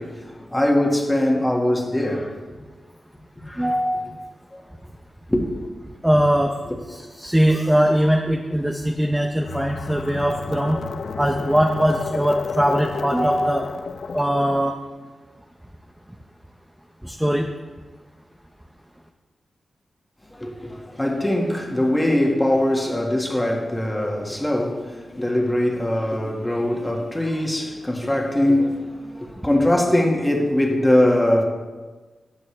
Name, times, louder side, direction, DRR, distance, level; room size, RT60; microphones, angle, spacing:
voice 1, 0.0-2.6 3.4-3.7 4.5-4.6 5.3-5.5 20.2-31.4, left 1 dB, 10° left, 1.7 m, -22 dB
voice 2, 3.6-4.1 6.0-6.5 6.9-10.8 11.2-13.7 14.1-14.8 17.0-17.5, equal, 5° right, 0.6 m, -21 dB
sound 1, 9.5-14.6, left 5 dB, 65° left, 0.4 m, -31 dB
20.0 x 6.8 x 3.3 m
wide cardioid pair, 140°, 0 cm